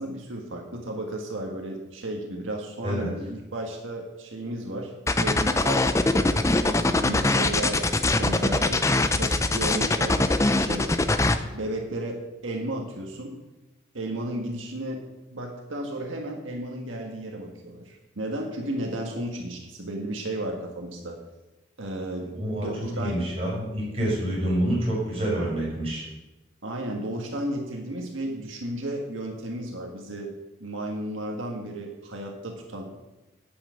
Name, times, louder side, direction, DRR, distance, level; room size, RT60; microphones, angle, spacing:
voice 1, 0.0-4.9 5.2-6.3 6.6-8.8 9.1-11.0 11.5-13.4 13.9-15.0 15.3-21.2 21.8-23.2 26.6-30.3 30.6-33.0, right 1 dB, 90° right, 1 dB, 1.7 m, -33 dB
sound 1, 5.1-11.4, left 2 dB, 15° left, 0.5 m, -22 dB
voice 2, 22.3-26.1, right 1 dB, 30° right, -5 dB, 5.2 m, -27 dB
8.8 x 8.8 x 7.7 m, 1.0 s
head